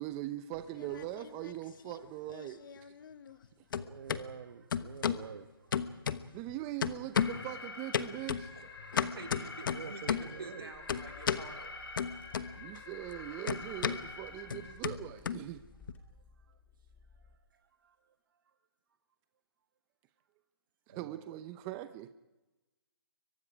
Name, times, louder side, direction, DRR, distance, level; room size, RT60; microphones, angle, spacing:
voice 1, 0.0-3.0 6.3-8.5 12.5-15.6 20.9-22.1, right 14 dB, 20° right, 11 dB, 0.7 m, -41 dB
sound 1, 0.6-1.6 1.9-3.5 3.7-4.2 4.7-5.3 5.7-6.5 6.8-7.5 7.9-10.4 10.9-11.5 12.0-12.8 13.1-15.9, left 8 dB, 55° left, 1.2 m, -35 dB
voice 2, 3.7-5.9 9.6-10.7 17.8-17.9 20.9-21.2, right 7 dB, 55° right, 7 dB, 1.3 m, -47 dB
Alarm, 7.1-14.7, left 3 dB, 80° left, 5.5 m, -47 dB
voice 3, 8.5-11.7 12.3-12.5 13.1-13.2, right 4 dB, 75° right, 4 dB, 3.8 m, -48 dB
Car / Engine, 10.7-17.4, left 4 dB, 15° left, 2.6 m, -60 dB
29.5 x 23.5 x 5.0 m, 1.1 s
hypercardioid pair, 145°, 13 cm